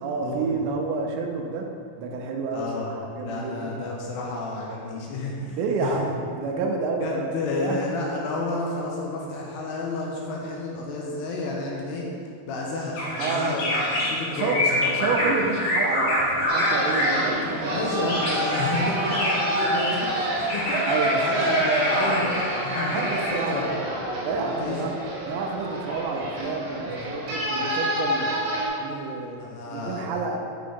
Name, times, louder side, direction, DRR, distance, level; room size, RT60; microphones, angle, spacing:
voice 1, 0.0-1.7 2.0-2.7 3.1-3.7 5.6-7.3 7.6-7.9 13.2-13.7 14.4-18.2 20.9-21.5 21.9-22.0 22.9-23.7 24.2-24.9 25.3-28.3 28.8-29.4 29.7-30.4, right 4 dB, 85° right, 2 dB, 2.8 m, -29 dB
voice 2, 2.5-2.9 3.2-6.0 7.0-12.0 12.5-15.3 17.7-23.0 23.3-23.8 24.6-24.8 29.4-30.0, left 2 dB, 80° left, -3 dB, 2.7 m, -30 dB
sound 1, 12.9-17.3 18.0-20.1 20.5-23.3, left 1 dB, 65° left, 2.5 m, -26 dB
sound 2, 16.5-28.7, right 1 dB, 70° right, 2.5 m, -28 dB
7.6 x 3.7 x 3.5 m, 2.5 s
omnidirectional pair, 5.0 m